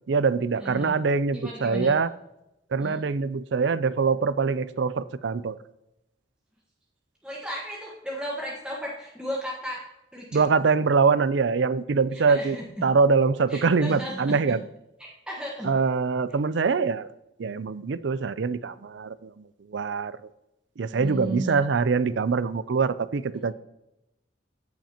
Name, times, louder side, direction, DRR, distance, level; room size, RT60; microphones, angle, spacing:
voice 1, 0.1-2.1 2.7-5.6 10.3-12.6 12.8-14.6 15.6-17.1 17.4-19.3 19.7-20.2 20.8-23.5, right 5 dB, 70° right, 16 dB, 0.4 m, -24 dB
voice 2, 0.6-0.9 1.3-1.9 2.8-3.0 7.2-9.8 10.1-10.5 12.3-12.8 13.5-14.5 15.0-15.7 20.9-21.6, equal, 5° right, -4 dB, 1.3 m, -34 dB
15.5 x 5.9 x 2.9 m, 0.89 s
head